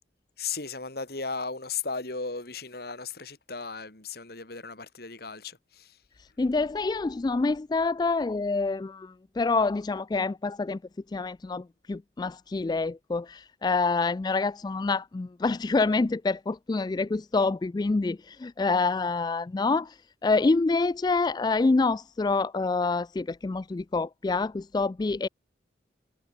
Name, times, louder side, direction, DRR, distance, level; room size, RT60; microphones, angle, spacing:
voice 1, 0.4-6.0, left 5 dB, 60° left, 3.2 m, -36 dB
voice 2, 6.4-10.8 11.1-25.3, left 3 dB, 25° left, 0.3 m, -27 dB
head